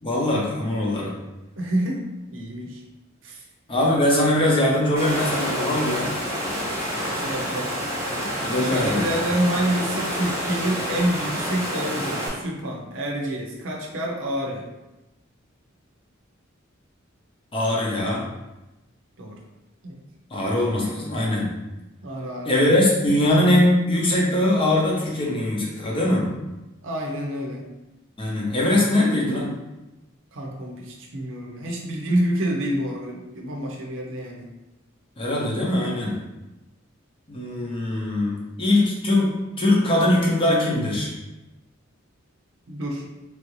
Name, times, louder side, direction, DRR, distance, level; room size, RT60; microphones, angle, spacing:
voice 1, 0.0-1.1 3.7-6.1 8.4-9.1 17.5-18.2 20.3-21.5 22.5-26.3 28.2-29.5 35.2-36.2 37.3-41.1, left 1 dB, 25° left, -4 dB, 0.7 m, -21 dB
voice 2, 1.6-2.0 2.3-2.8 3.2-3.4 7.2-7.7 8.6-14.6 19.2-19.4 19.8-20.0 22.0-22.5 26.8-27.6 30.3-34.5 42.7-43.0, right 1 dB, 65° right, -1 dB, 0.6 m, -27 dB
Water, 5.0-12.3, equal, 15° right, 0.7 m, -28 dB
3.2 x 2.6 x 3.0 m, 1.0 s
head